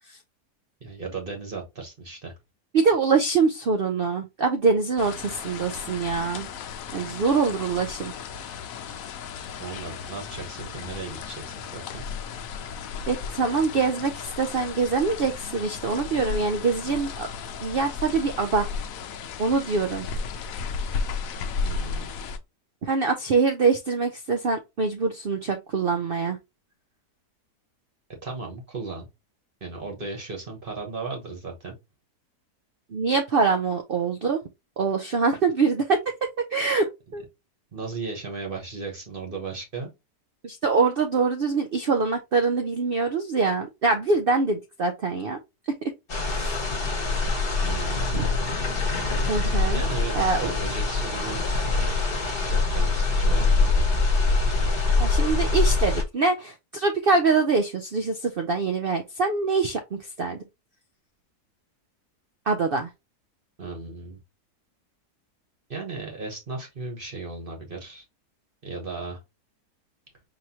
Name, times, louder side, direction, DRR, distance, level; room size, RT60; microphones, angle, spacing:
voice 1, 0.8-2.3 9.6-12.0 21.6-22.1 28.2-29.1 29.6-31.7 37.7-39.9 47.6-48.3 49.7-51.9 52.5-53.8 63.6-64.2 65.7-68.0 68.6-69.2, right 3 dB, 35° right, 1.3 m, -36 dB
voice 2, 2.7-6.5 6.9-8.1 13.1-17.3 17.6-18.7 19.4-20.1 22.8-26.4 32.9-34.4 34.8-36.0 36.4-37.2 40.4-45.4 46.2-46.7 48.1-48.3 49.3-49.8 50.1-50.5 55.0-60.4 62.5-62.9, right 4 dB, 85° right, 0.5 m, -24 dB
sound 1, 5.0-22.4, left 5 dB, 65° left, 1.0 m, -34 dB
sound 2, 46.1-56.0, left 3 dB, 40° left, 1.2 m, -24 dB
4.8 x 3.1 x 2.8 m
omnidirectional pair, 1.7 m